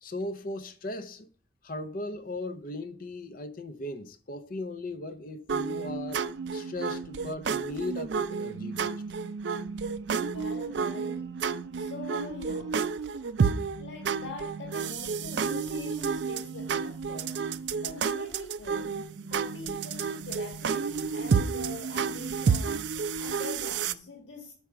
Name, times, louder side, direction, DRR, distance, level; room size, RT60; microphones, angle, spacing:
voice 1, 0.0-1.3 1.6-9.0, left 2 dB, 45° left, 0.6 m, -37 dB
sound 1, 5.5-23.9, right 5 dB, 65° right, 0.4 m, -31 dB
voice 2, 10.2-11.3 11.7-12.8 13.7-19.0 19.3-24.5, left 3 dB, 75° left, 1.5 m, -43 dB
6.3 x 4.8 x 5.6 m
head